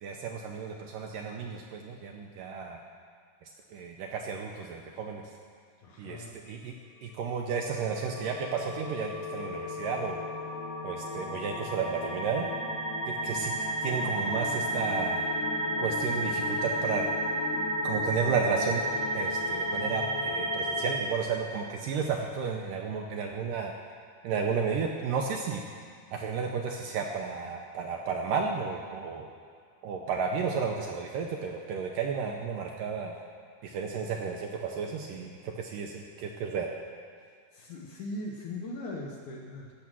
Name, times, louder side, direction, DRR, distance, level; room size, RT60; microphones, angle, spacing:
voice 1, 0.0-2.8 3.7-5.2 6.0-6.7 7.0-10.2 10.8-12.5 13.1-13.5 13.8-15.3 15.8-17.1 17.8-18.8 19.1-23.7 24.2-25.6 26.1-29.3 29.8-33.1 33.6-36.7, right 5 dB, 75° right, 1 dB, 2.1 m, -32 dB
voice 2, 5.8-6.4 37.5-39.7, left 1 dB, 65° left, -1 dB, 2.1 m, -39 dB
sound 1, 7.7-21.0, equal, 85° left, 3.2 m, -32 dB
17.0 x 7.0 x 6.2 m, 2.1 s
omnidirectional pair, 4.5 m